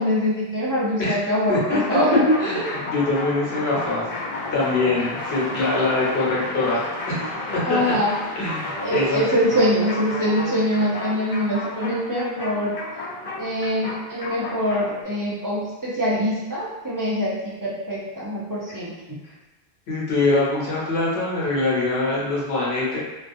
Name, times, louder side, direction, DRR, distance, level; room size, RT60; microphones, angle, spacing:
voice 1, 0.0-2.4 7.6-8.1 8.8-12.7 13.4-18.9, equal, 25° right, -8 dB, 0.4 m, -23 dB
voice 2, 1.5-1.8 2.4-4.0 4.5-7.2 7.5-7.9 8.4-9.3 19.9-23.0, left 2 dB, 85° left, -5 dB, 1.0 m, -23 dB
sound 1, 1.5-15.0, left 2 dB, 55° left, 0.4 m, -32 dB
2.3 x 2.2 x 2.5 m, 1.1 s
omnidirectional pair, 1.0 m